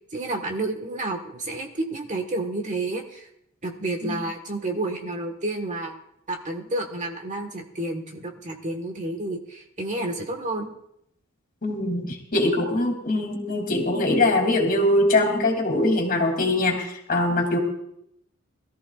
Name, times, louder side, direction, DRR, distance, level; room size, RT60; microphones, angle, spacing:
voice 1, 0.1-3.3 3.6-6.0 6.3-10.7, right 2 dB, 35° right, 4 dB, 1.4 m, -30 dB
voice 2, 11.6-17.6, left 2 dB, 45° left, 2 dB, 2.9 m, -22 dB
22.5 x 14.0 x 2.4 m, 0.75 s
head